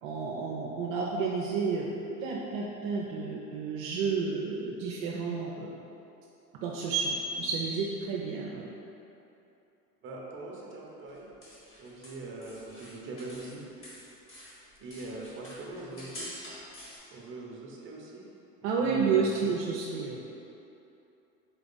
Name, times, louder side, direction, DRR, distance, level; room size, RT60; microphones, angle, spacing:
voice 1, 0.0-1.9 2.2-5.7 6.6-8.6 18.6-20.2, right 5 dB, 55° right, -3 dB, 0.6 m, -30 dB
voice 2, 10.0-11.3 11.7-13.6 14.8-16.3 17.1-18.2 18.8-19.6, right 2 dB, 25° right, -2 dB, 0.8 m, -42 dB
sound 1, 11.1-13.6 13.8-17.0, equal, 25° left, 1.4 m, -47 dB
4.0 x 3.4 x 3.9 m, 2.8 s
hypercardioid pair, 90°, 49 cm